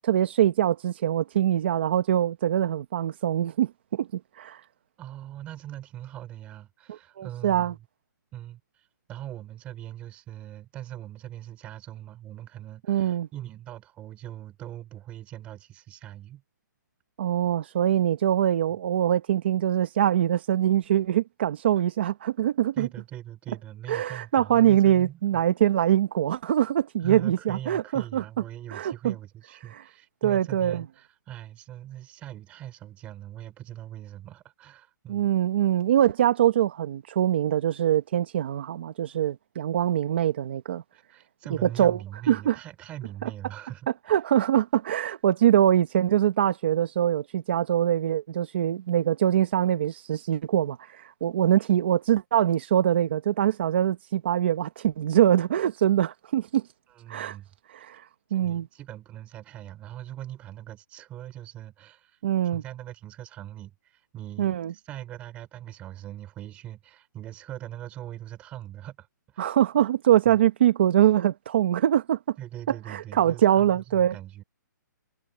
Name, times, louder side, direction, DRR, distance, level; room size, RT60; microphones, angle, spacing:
voice 1, 0.0-4.1 4.3-4.6 7.2-7.7 12.9-13.3 17.2-22.9 23.9-28.2 28.7-29.1 29.7-29.8 30.2-30.8 35.1-40.8 41.6-42.0 42.3-42.6 43.2-43.3 44.1-56.6 57.1-57.4 57.7-58.7 62.2-62.6 64.4-64.7 69.4-72.3 72.7-74.2, right 11 dB, 35° right, 0.9 m, -23 dB
voice 2, 5.0-7.8 8.3-16.4 22.8-25.4 27.0-35.3 40.9-44.1 56.9-57.5 57.9-58.0 58.3-62.2 62.5-69.1 69.3-69.5 70.3-70.4 72.4-74.4, right 13 dB, 10° right, 4.4 m, -41 dB
hypercardioid pair, 175°, 10 cm